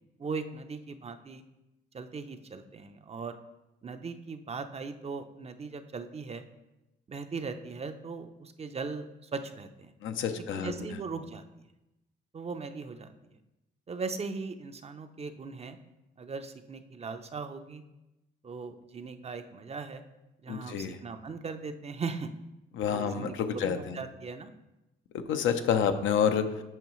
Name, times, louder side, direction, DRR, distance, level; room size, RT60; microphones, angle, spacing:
voice 1, 0.2-1.4 1.9-3.4 3.8-6.4 7.1-9.9 10.5-11.7 12.3-13.1 13.9-15.8 16.2-17.8 18.4-20.0 20.4-22.3 22.9-24.5, right 4 dB, 30° right, 8 dB, 0.6 m, -39 dB
voice 2, 10.0-10.7 20.5-21.0 22.7-24.0 25.1-26.6, left 7 dB, 80° left, 7 dB, 0.7 m, -28 dB
8.9 x 5.5 x 3.1 m, 0.96 s
cardioid pair, 90°, 20 cm